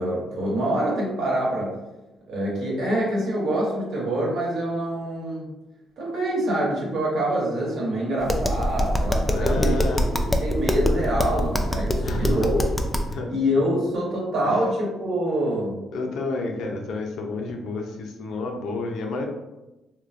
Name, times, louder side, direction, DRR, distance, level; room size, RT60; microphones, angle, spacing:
voice 1, 0.0-1.8 2.3-5.5 6.0-9.8 10.4-12.6 13.3-15.7, right 1 dB, 75° right, -4 dB, 1.1 m, -25 dB
Tap, 8.2-13.1, equal, 15° left, 0.3 m, -24 dB
voice 2, 9.3-10.1 12.0-12.5 13.1-13.3 14.4-14.6 15.9-19.3, left 3 dB, 75° left, 2 dB, 0.5 m, -30 dB
3.5 x 2.2 x 2.5 m, 1.0 s
cardioid pair, 90°, 0 cm